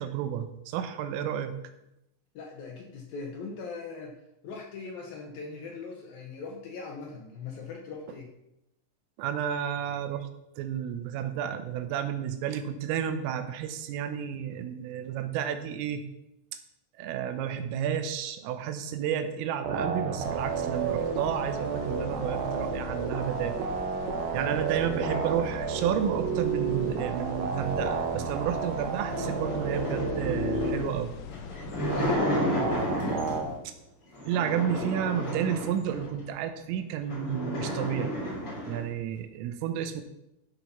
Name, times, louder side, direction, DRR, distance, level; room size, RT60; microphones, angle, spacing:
voice 1, 0.0-1.6 9.2-10.3 10.6-16.0 17.0-23.6 24.3-31.1 33.7-33.8 34.3-38.2 38.7-40.0, right 9 dB, 85° right, 9 dB, 3.6 m, -31 dB
voice 2, 2.3-4.2 4.4-8.3 24.4-25.3 31.8-32.7, left 4 dB, 70° left, 1 dB, 2.3 m, -40 dB
sound 1, 19.6-30.7 31.9-33.4, right 5 dB, 65° right, 2.8 m, -31 dB
sound 2, 20.2-32.2, left 8 dB, 85° left, 2.4 m, -43 dB
sound 3, 28.4-33.6 34.1-36.2 36.7-36.8 37.0-38.8, equal, 30° left, 3.9 m, -32 dB
12.5 x 6.8 x 5.7 m, 0.86 s
omnidirectional pair, 5.9 m